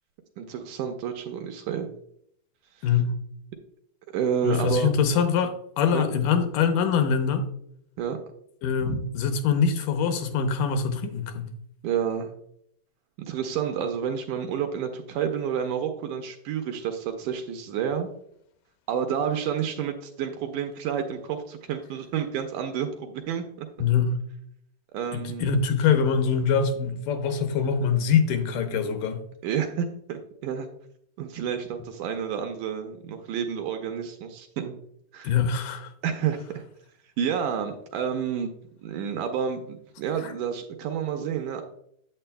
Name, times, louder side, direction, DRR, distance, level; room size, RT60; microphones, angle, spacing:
voice 1, 0.4-1.9 4.1-4.9 5.9-6.1 8.0-8.2 11.8-12.3 13.2-18.1 18.9-23.7 24.9-25.5 29.4-30.7 31.2-34.8 35.1-35.3 36.0-36.6 37.2-38.5 38.8-41.6, right 8 dB, 80° right, 5 dB, 2.0 m, -29 dB
voice 2, 2.8-3.2 4.4-7.5 8.6-11.5 23.8-24.2 25.1-29.2 35.2-35.9 40.2-40.3, left 6 dB, 80° left, 7 dB, 2.2 m, -24 dB
8.9 x 7.6 x 2.2 m, 0.70 s
omnidirectional pair, 3.9 m